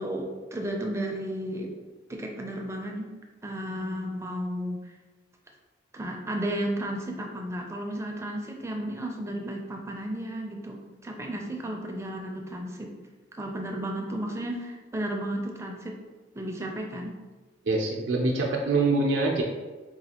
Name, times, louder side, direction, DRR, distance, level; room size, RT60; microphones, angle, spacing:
voice 1, 0.0-1.7 2.1-3.1 3.4-4.9 5.9-12.9 13.3-16.0 16.3-17.1, right 1 dB, 15° right, 1 dB, 0.4 m, -33 dB
voice 2, 17.7-19.4, right 3 dB, 85° right, -1 dB, 0.5 m, -24 dB
4.0 x 2.4 x 2.8 m, 1.3 s
head